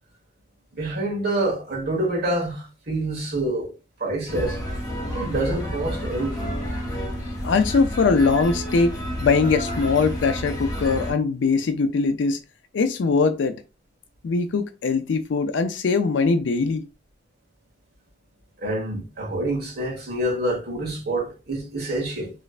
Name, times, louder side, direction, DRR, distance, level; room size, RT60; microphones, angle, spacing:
voice 1, 0.7-3.7 4.0-4.6 5.1-6.6 18.6-22.3, right 1 dB, 60° right, 1.4 m, -27 dB
sound 1, 4.3-11.1, equal, 20° left, 1.7 m, -30 dB
voice 2, 7.4-12.4 12.7-13.6 14.2-16.8, left 4 dB, 85° left, 0.4 m, -21 dB
3.1 x 3.1 x 2.4 m
head